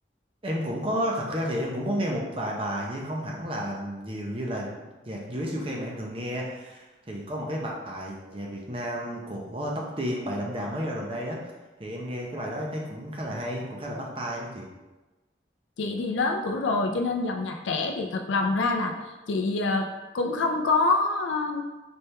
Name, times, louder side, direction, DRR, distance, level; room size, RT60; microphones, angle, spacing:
voice 1, 0.4-4.7 5.1-11.4 11.8-14.7, equal, 30° right, -2 dB, 0.7 m, -32 dB
voice 2, 15.8-18.9 19.3-19.9 20.1-21.6, left 3 dB, 85° left, 3 dB, 0.4 m, -26 dB
4.3 x 3.4 x 3.3 m, 1.1 s
head